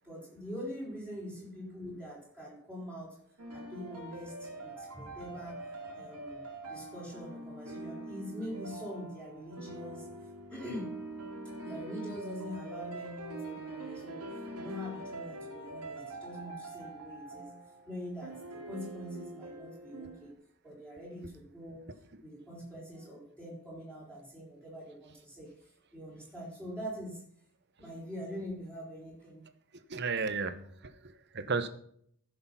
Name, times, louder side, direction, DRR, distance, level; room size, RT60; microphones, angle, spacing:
voice 1, 0.0-3.2 3.5-5.6 5.9-6.4 6.7-10.1 10.5-11.0 11.6-14.3 14.5-17.5 17.9-20.3 20.6-21.8 22.2-27.2 27.8-29.4, equal, 5° left, -6 dB, 4.6 m, -43 dB
sound 1, 3.4-20.3, right 2 dB, 90° right, 2.7 m, -44 dB
voice 2, 29.9-31.7, right 4 dB, 50° right, 11 dB, 1.0 m, -34 dB
15.0 x 6.7 x 5.6 m, 0.65 s
head